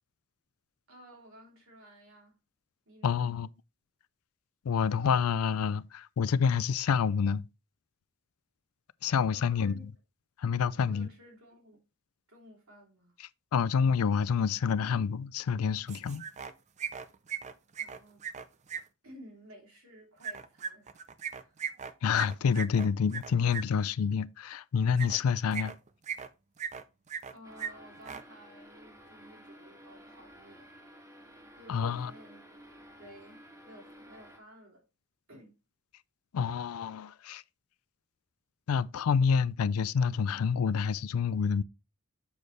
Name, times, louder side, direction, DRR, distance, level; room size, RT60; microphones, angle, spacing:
voice 1, 0.9-2.4 2.9-3.3 9.3-9.8 10.8-11.8 12.3-13.1 17.8-18.3 19.0-21.0 21.3-21.6 27.3-30.8 31.2-32.5 33.0-34.8 35.3-35.6 38.7-38.9, equal, 75° right, 2.8 m, -54 dB
voice 2, 3.0-3.5 4.6-7.5 9.0-9.9 10.4-11.1 13.5-16.2 22.0-25.7 31.7-32.1 36.3-37.4 38.7-41.6, left 6 dB, 85° left, 0.4 m, -28 dB
sound 1, 15.9-16.5 16.8-18.8 20.2-23.6 24.9-25.2 25.5-26.3 26.6-27.3 27.6-27.7 28.0-28.2, right 7 dB, 35° right, 0.5 m, -38 dB
sound 2, 27.4-34.4, equal, 15° right, 1.5 m, -53 dB
7.0 x 6.4 x 3.2 m
head